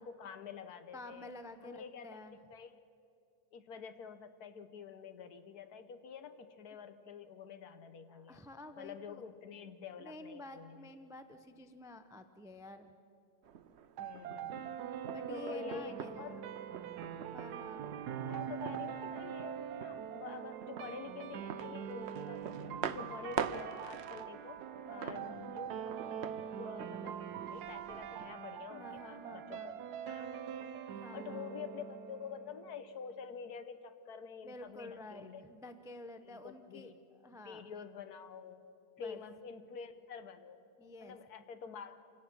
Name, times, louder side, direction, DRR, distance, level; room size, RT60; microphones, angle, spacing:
voice 1, 0.0-1.3 1.6-2.2 2.5-2.7 3.5-8.4 8.8-10.9 14.0-14.6 15.3-16.4 18.1-24.6 24.9-29.7 30.1-30.7 31.1-35.4 36.2-37.0 37.4-38.7 39.0-40.6 41.0-42.0, left 6 dB, 70° left, 10 dB, 1.4 m, -48 dB
voice 2, 0.9-2.4 8.1-9.3 10.0-12.9 15.1-16.2 17.3-17.9 22.7-23.1 24.8-25.4 28.7-29.8 30.9-31.5 34.4-36.9 37.2-37.6 39.0-39.2 40.8-41.2, left 1 dB, 5° right, 8 dB, 0.3 m, -50 dB
sound 1, 13.4-28.3, right 8 dB, 55° right, 0.8 m, -46 dB
sound 2, 14.0-32.9, right 9 dB, 75° right, 1.2 m, -43 dB
27.0 x 17.0 x 6.1 m, 2.5 s
omnidirectional pair, 1.7 m